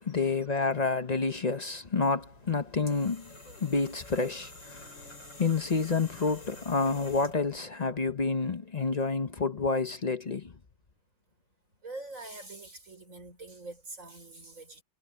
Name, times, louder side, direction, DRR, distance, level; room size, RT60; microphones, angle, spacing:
voice 1, 0.0-5.0 5.4-10.5, left 4 dB, 45° left, 0.5 m, -29 dB
sound 1, 2.2-7.6, left 2 dB, 75° left, 8.2 m, -49 dB
voice 2, 11.8-14.8, right 2 dB, 45° right, 5.7 m, -44 dB
omnidirectional pair, 2.0 m